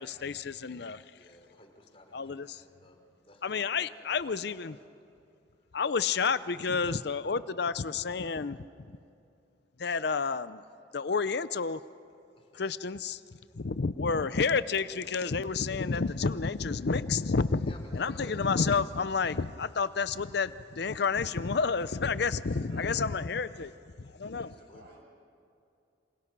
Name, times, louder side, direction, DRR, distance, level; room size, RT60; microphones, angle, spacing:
voice 1, 0.0-1.3 2.1-2.6 3.4-4.8 5.7-9.0 9.8-10.6 10.9-11.8 12.5-13.2 13.5-23.7 24.0-24.5, left 5 dB, 60° left, 15 dB, 0.6 m, -30 dB
voice 2, 1.2-3.7 4.0-4.6 12.4-12.6 13.6-13.7 15.7-15.8 17.7-18.3 24.2-24.8, left 1 dB, 30° left, 3 dB, 3.6 m, -55 dB
voice 3, 22.5-23.1 23.4-23.6 24.3-25.0, right 1 dB, 55° right, -1 dB, 7.8 m, -55 dB
28.5 x 26.5 x 6.1 m, 2.6 s
head